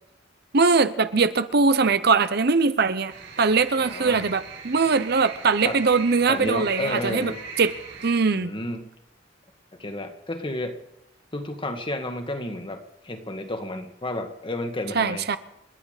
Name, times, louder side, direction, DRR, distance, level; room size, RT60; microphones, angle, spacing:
voice 1, 0.5-7.3 7.6-7.7 8.0-8.5 14.9-15.4, right 4 dB, 60° right, 12 dB, 0.8 m, -21 dB
sound 1, 3.1-8.1, right 5 dB, 75° right, 5.7 m, -39 dB
voice 2, 3.8-4.3 5.6-5.8 6.3-7.4 8.3-8.9 9.8-10.8 11.3-15.3, left 1 dB, 30° left, 6 dB, 1.7 m, -31 dB
29.0 x 9.9 x 5.0 m, 0.87 s
head